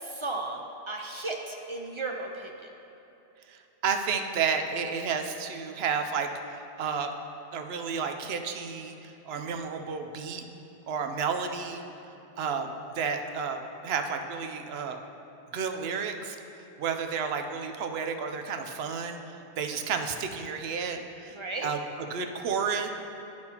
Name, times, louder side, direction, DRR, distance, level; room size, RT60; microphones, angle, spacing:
voice 1, 0.0-2.7 21.3-21.7, right 2 dB, 45° right, 1 dB, 0.4 m, -35 dB
voice 2, 3.5-7.1 7.5-10.4 10.9-11.8 12.4-15.0 15.5-16.4 16.8-22.9, right 6 dB, 80° right, 5 dB, 0.8 m, -32 dB
11.5 x 6.1 x 2.9 m, 2.9 s
omnidirectional pair, 1.0 m